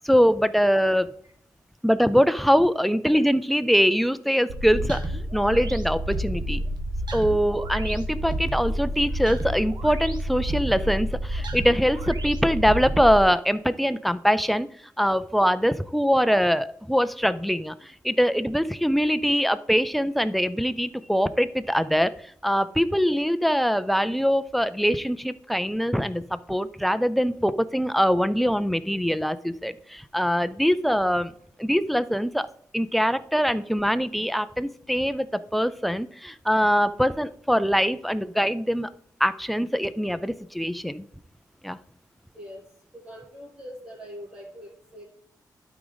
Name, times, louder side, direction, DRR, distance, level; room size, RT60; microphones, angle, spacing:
voice 1, 0.0-1.2 1.8-5.0 5.3-6.6 7.1-14.7 15.0-31.3 31.6-32.5 32.7-38.9 39.2-41.0 41.6-41.8, equal, ahead, 13 dB, 0.5 m, -23 dB
sound 1, 4.5-13.2, right 1 dB, 70° right, 1.5 m, -29 dB
voice 2, 42.9-45.0, equal, 25° right, -8 dB, 3.3 m, -42 dB
12.0 x 5.0 x 4.0 m, 0.63 s
wide cardioid pair, 135°, 8 cm